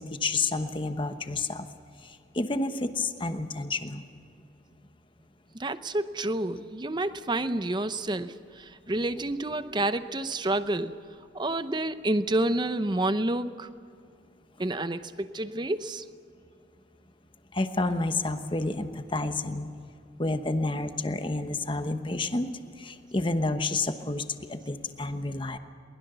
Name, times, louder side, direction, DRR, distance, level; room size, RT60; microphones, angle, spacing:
voice 1, 0.0-1.7 2.0-4.0 17.5-19.7 20.2-22.5 22.8-25.6, left 2 dB, 30° left, 8 dB, 1.1 m, -30 dB
voice 2, 5.6-11.0 11.3-13.7 14.6-16.0, right 1 dB, 25° right, 12 dB, 0.7 m, -29 dB
23.0 x 20.5 x 6.9 m, 2.4 s
head